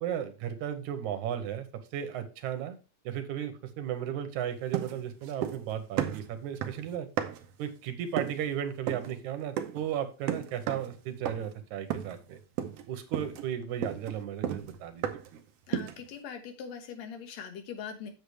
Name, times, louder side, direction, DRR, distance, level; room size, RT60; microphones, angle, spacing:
voice 1, 0.0-2.8 3.1-7.1 7.6-12.4 12.9-15.0 15.3-15.4, right 10 dB, 90° right, 9 dB, 2.4 m, -35 dB
sound 1, 4.7-5.7 6.0-7.6 8.2-8.5 8.9-9.1 9.6-9.9 10.3-10.9 11.3-11.6 11.9-12.3 12.6-12.9 13.1-15.4 15.7-16.1, right 10 dB, 70° right, 1.7 m, -34 dB
voice 2, 15.7-18.1, left 7 dB, 70° left, 6 dB, 2.4 m, -41 dB
8.1 x 7.0 x 3.3 m, 0.33 s
omnidirectional pair, 3.3 m